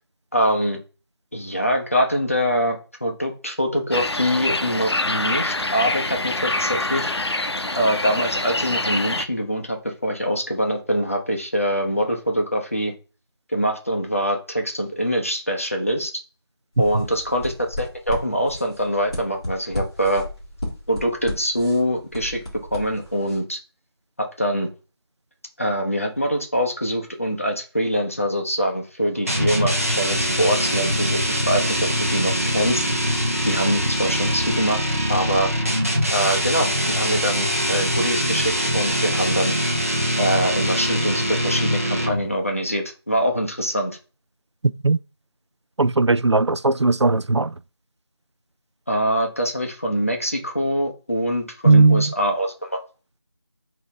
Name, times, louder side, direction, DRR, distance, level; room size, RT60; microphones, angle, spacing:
voice 1, 0.3-0.8 1.3-7.1 7.8-12.9 13.5-16.1 16.8-20.3 20.9-22.4 22.7-23.6 24.2-24.7 25.6-32.8 33.4-34.8 35.1-35.5 36.1-39.5 40.2-44.0 48.9-52.8, equal, 30° left, 0.8 m, -24 dB
sound 1, 3.9-9.2, left 2 dB, 70° left, 0.7 m, -25 dB
sound 2, 16.7-23.4, left 1 dB, 10° left, 1.2 m, -34 dB
sound 3, 29.3-42.3, equal, 35° right, 0.9 m, -23 dB
voice 2, 45.8-47.5 51.6-52.1, right 3 dB, 90° right, 0.4 m, -17 dB
5.4 x 2.9 x 3.3 m
figure-of-eight pair, 175°, 14 cm